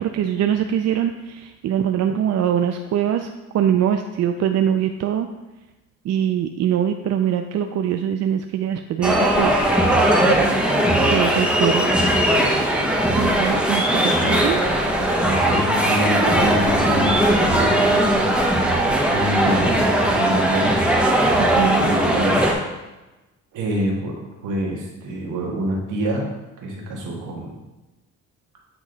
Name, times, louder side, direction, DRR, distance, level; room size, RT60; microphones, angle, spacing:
voice 1, 0.0-3.3 3.5-5.3 6.0-9.6 10.3-10.5 11.1-11.9 13.2-14.6 21.4-21.9, right 9 dB, 60° right, 6 dB, 0.4 m, -23 dB
sound 1, 9.0-22.5, right 1 dB, 5° right, 0.9 m, -19 dB
voice 2, 15.0-18.4 19.1-20.8 21.7-22.5 23.5-26.3 26.6-27.6, right 1 dB, 80° right, -1 dB, 1.6 m, -26 dB
8.6 x 3.1 x 3.9 m, 1.1 s
cardioid pair, 90°, 30 cm